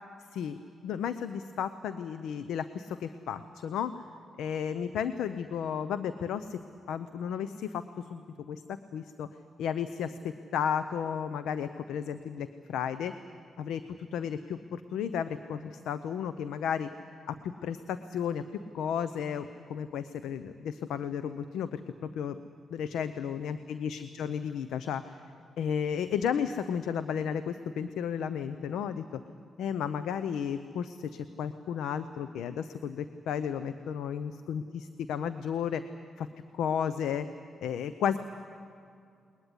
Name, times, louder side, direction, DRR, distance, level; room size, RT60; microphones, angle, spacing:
voice 1, 0.8-3.9 4.4-6.6 6.9-9.3 9.6-13.2 13.6-16.9 17.3-22.4 22.7-25.2 25.6-29.0 29.6-35.8 36.2-36.3 36.5-37.3 37.6-38.2, left 8 dB, 85° left, 12 dB, 0.7 m, -33 dB
20.5 x 20.5 x 9.8 m, 2.4 s
supercardioid pair, 60°, 0 cm